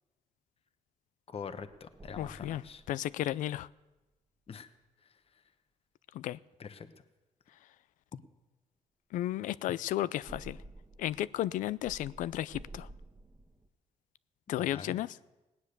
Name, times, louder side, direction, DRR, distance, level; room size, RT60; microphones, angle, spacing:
voice 1, 1.3-2.8 4.5-4.7 6.6-6.9 14.6-15.0, left 6 dB, 50° left, 9 dB, 1.1 m, -44 dB
sound 1, 1.7-3.8 10.3-13.7, right 2 dB, 20° right, 1.3 m, -52 dB
voice 2, 2.2-2.6 2.9-3.7 6.1-6.4 9.1-10.6 11.0-12.9 14.5-15.2, left 13 dB, 85° left, 18 dB, 0.4 m, -33 dB
17.5 x 9.6 x 6.7 m, 1.1 s
cardioid pair, 75°, 13 cm